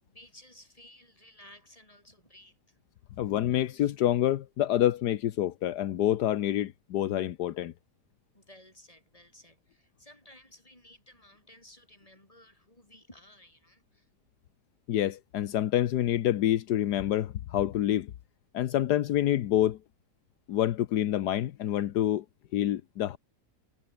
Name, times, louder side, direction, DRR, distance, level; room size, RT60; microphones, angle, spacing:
voice 1, 0.0-2.8 8.3-14.1, left 1 dB, 20° left, 7.5 m, -56 dB
voice 2, 3.2-7.7 14.9-18.1 18.5-19.8 20.5-22.2 22.5-23.2, left 12 dB, 80° left, 1.4 m, -27 dB
omnidirectional pair, 1.7 m